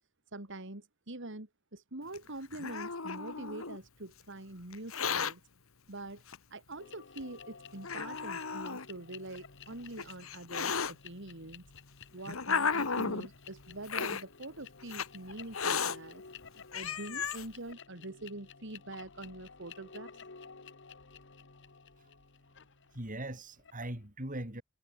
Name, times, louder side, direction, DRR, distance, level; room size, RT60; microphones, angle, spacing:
voice 1, 0.3-5.4 5.9-6.2 6.5-11.6 12.1-16.2 16.7-20.1, right 2 dB, 60° right, 3.3 m, -45 dB
Hiss, 2.1-3.8 4.7-5.3 6.3-6.4 7.2-7.3 7.8-8.8 9.7-10.9 11.8-13.3 13.8-14.2 14.9-15.1 15.5-16.0 16.4-16.5 16.7-17.4, left 5 dB, 75° left, 1.9 m, -34 dB
sound 1, 6.8-24.0, left 6 dB, 60° left, 1.7 m, -53 dB
voice 2, 22.9-24.6, right 1 dB, 40° right, 5.0 m, -40 dB
head